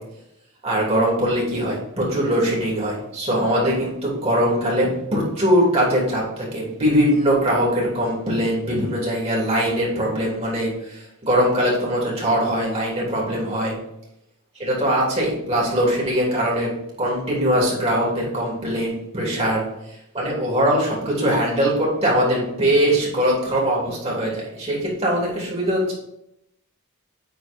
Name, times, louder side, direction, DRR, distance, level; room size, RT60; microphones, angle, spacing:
voice 1, 0.6-13.7 14.5-16.7 17.0-19.6 20.1-25.9, equal, 25° right, -4 dB, 2.8 m, -21 dB
9.2 x 3.8 x 5.2 m, 0.82 s
head